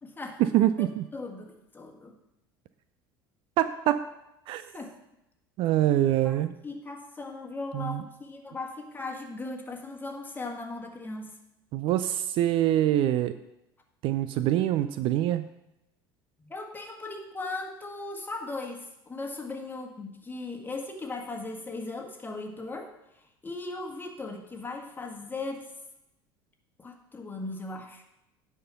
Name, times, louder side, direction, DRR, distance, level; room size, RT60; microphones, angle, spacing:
voice 1, 0.0-0.4 0.8-2.1 4.7-4.9 6.2-6.4 6.6-11.3 16.4-25.7 26.8-28.0, left 3 dB, 15° left, 2 dB, 1.7 m, -38 dB
voice 2, 0.5-1.1 3.6-4.0 4.5-4.7 5.6-6.5 7.7-8.0 11.7-13.3 14.0-15.5, right 12 dB, 45° right, 12 dB, 0.4 m, -25 dB
9.3 x 5.8 x 5.9 m, 0.88 s
figure-of-eight pair, 65°, 12 cm